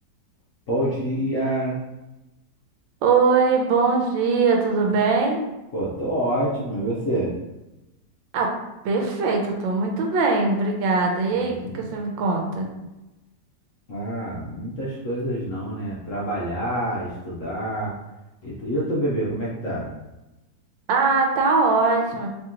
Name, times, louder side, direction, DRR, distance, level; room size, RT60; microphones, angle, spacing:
voice 1, 0.7-1.8 5.7-7.3 11.4-11.9 13.9-18.0 18.4-19.9, right 1 dB, 55° left, -6 dB, 0.9 m, -27 dB
voice 2, 3.0-5.4 8.3-8.5 8.8-12.7 20.9-22.3, right 4 dB, 80° right, 1 dB, 1.4 m, -21 dB
3.4 x 2.9 x 3.6 m, 0.99 s
omnidirectional pair, 2.1 m